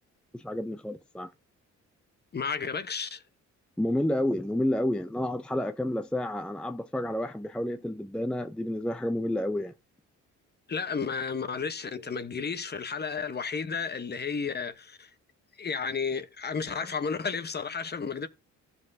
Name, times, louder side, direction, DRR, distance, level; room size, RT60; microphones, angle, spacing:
voice 1, 0.3-1.3 3.8-9.7, left 1 dB, 5° left, 0.5 m, -30 dB
voice 2, 2.3-3.2 10.7-15.1 15.6-18.3, left 5 dB, 35° left, 1.0 m, -32 dB
15.0 x 5.5 x 2.7 m
cardioid pair, 90°, 30 cm